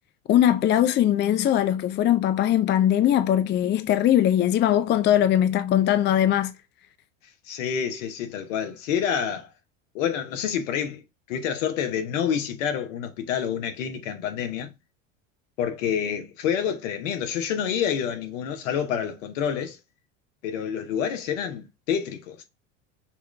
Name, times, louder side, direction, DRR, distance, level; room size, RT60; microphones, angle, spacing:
voice 1, 0.3-6.5, left 11 dB, 30° left, 0.4 m, -20 dB
voice 2, 7.4-9.5 9.9-14.7 15.6-19.8 20.4-22.4, left 8 dB, 75° left, 1.2 m, -28 dB
5.9 x 2.6 x 3.2 m
hypercardioid pair, 90°, 38 cm